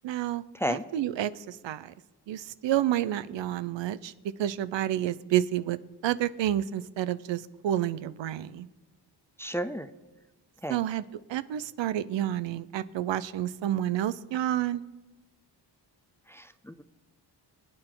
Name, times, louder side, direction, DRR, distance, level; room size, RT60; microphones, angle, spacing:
voice 1, 0.0-1.9 2.3-5.8 6.0-8.7 10.7-14.8, right 12 dB, 85° right, 15 dB, 0.7 m, -30 dB
voice 2, 9.4-9.9 10.6-10.8 16.3-16.8, equal, 5° left, 10 dB, 0.5 m, -32 dB
25.5 x 9.0 x 3.8 m, 1.2 s
cardioid pair, 115°, 43 cm